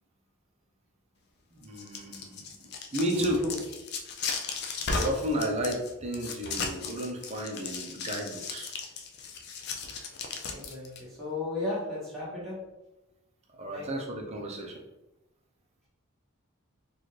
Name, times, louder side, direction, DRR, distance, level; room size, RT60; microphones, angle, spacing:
voice 1, 1.5-3.4 4.9-8.7 13.6-14.8, equal, 30° right, 0 dB, 0.6 m, -33 dB
sound 1, 1.6-11.0, left 4 dB, 45° left, 0.4 m, -36 dB
voice 2, 3.1-3.6 10.5-12.6 13.7-14.0, left 2 dB, ahead, -10 dB, 1.4 m, -35 dB
4.1 x 2.4 x 3.1 m, 0.97 s
head